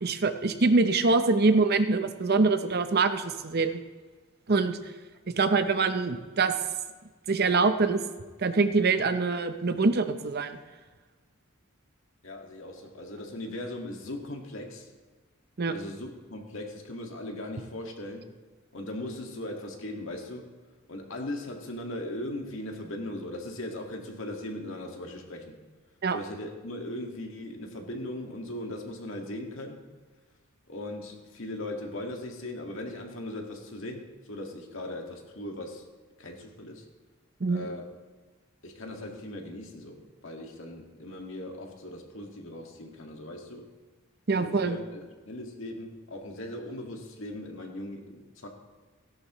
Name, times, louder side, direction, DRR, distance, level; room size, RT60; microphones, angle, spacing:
voice 1, 0.0-3.8 4.5-4.8 5.3-6.5 7.3-8.0 8.4-10.6 15.6-15.7 26.0-26.2 37.4-37.7 44.3-44.8, right 3 dB, 50° right, 9 dB, 0.7 m, -24 dB
voice 2, 12.2-14.9 15.7-18.3 18.7-20.6 20.9-25.6 26.1-29.9 30.7-35.8 36.2-36.8 37.5-37.9 38.6-43.7 44.3-48.5, left 1 dB, 65° left, 2 dB, 1.9 m, -39 dB
16.5 x 11.5 x 3.1 m, 1.3 s
head